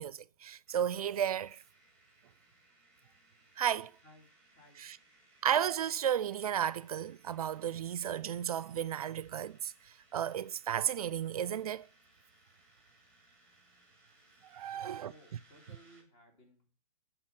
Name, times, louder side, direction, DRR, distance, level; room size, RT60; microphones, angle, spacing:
voice 1, 0.0-1.6 3.6-3.9 4.8-5.0 5.4-9.7 10.1-11.8 14.5-15.1, right 9 dB, 70° right, 0.4 m, -33 dB
sound 1, 0.7-16.0, right 2 dB, 5° left, 2.9 m, -66 dB
voice 2, 14.7-16.7, equal, 30° left, 3.1 m, -60 dB
6.6 x 3.9 x 5.9 m
hypercardioid pair, 140°, 20 cm